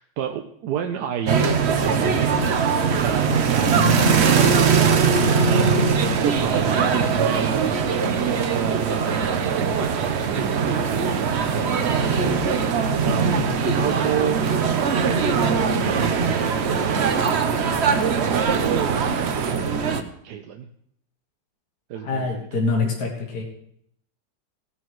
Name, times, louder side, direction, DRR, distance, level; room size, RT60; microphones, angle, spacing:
voice 1, 0.0-2.3 3.0-5.2 5.4-5.8 6.2-7.6 8.5-12.0 13.0-13.3 13.7-14.4 15.0-17.2 18.1-19.2 20.2-20.7 21.9-22.6, right 8 dB, 70° right, 5 dB, 1.2 m, -30 dB
sound 1, 1.3-20.0, right 5 dB, 50° right, 0.8 m, -21 dB
sound 2, 2.5-19.6, right 9 dB, 90° right, 1.5 m, -33 dB
voice 2, 13.2-13.6 22.0-23.4, left 3 dB, 55° left, -1 dB, 2.1 m, -25 dB
17.5 x 9.8 x 3.1 m, 0.71 s
omnidirectional pair, 2.0 m